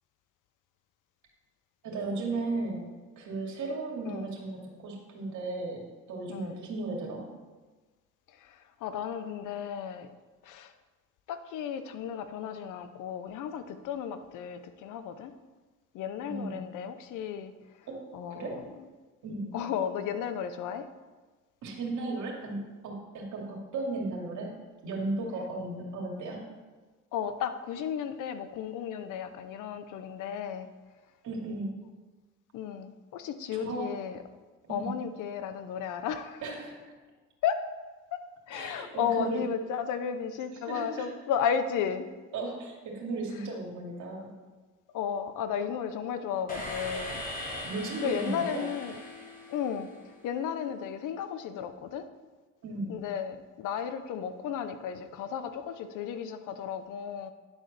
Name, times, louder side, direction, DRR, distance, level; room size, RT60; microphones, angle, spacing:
voice 1, 1.8-7.3 16.2-16.7 17.9-18.6 19.2-19.5 21.6-24.6 24.8-26.4 31.2-31.7 33.5-33.9 34.7-34.9 36.4-36.9 38.5-39.4 40.5-41.1 42.3-44.3 47.6-48.7 52.6-53.0, right 2 dB, 75° right, -1 dB, 2.4 m, -35 dB
voice 2, 8.8-10.1 10.5-10.7 11.3-15.3 15.9-17.5 18.1-18.6 19.5-20.8 27.1-30.7 32.5-34.2 34.7-36.4 37.4-37.6 38.5-42.1 44.9-47.2 48.0-49.0 49.5-49.9 50.2-52.0 52.9-57.3, left 8 dB, 90° left, 10 dB, 0.8 m, -34 dB
sound 1, 46.5-50.3, left 1 dB, 30° left, 3.1 m, -40 dB
11.0 x 4.5 x 6.6 m, 1.3 s
cardioid pair, 90°, 30 cm